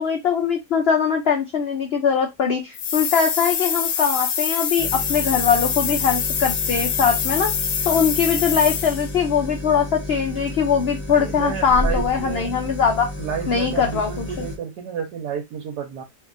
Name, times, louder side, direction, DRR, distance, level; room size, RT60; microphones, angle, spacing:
voice 1, 0.0-7.5 7.8-13.1 13.5-14.5, left 6 dB, 90° left, 3 dB, 0.5 m, -21 dB
sound 1, 2.7-9.2, left 7 dB, 70° left, 1.0 m, -25 dB
sound 2, 4.8-14.6, left 1 dB, 15° left, 0.5 m, -32 dB
voice 2, 11.1-12.5 13.2-16.0, right 7 dB, 85° right, 2 dB, 1.2 m, -31 dB
2.8 x 2.7 x 2.5 m, 0.18 s
omnidirectional pair, 1.7 m